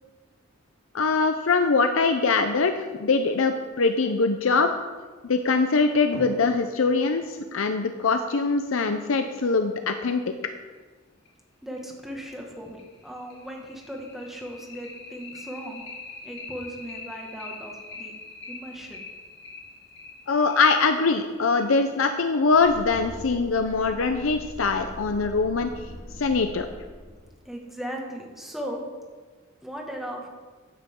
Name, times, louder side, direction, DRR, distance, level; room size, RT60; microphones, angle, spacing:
voice 1, 0.9-4.7 5.2-10.3 20.3-25.7 26.2-26.7, left 4 dB, 85° left, 7 dB, 0.6 m, -23 dB
sound 1, 6.1-9.3 10.7-10.8 11.3-11.4 11.8-11.9 12.3-22.3, left 2 dB, 60° left, 2.6 m, -43 dB
voice 2, 11.6-15.8 16.2-18.1 18.5-19.0 27.5-28.8 29.6-30.3, equal, ahead, -1 dB, 1.8 m, -37 dB
sound 2, 22.4-27.3, equal, 35° left, 1.3 m, -42 dB
14.5 x 10.0 x 3.7 m, 1.4 s
head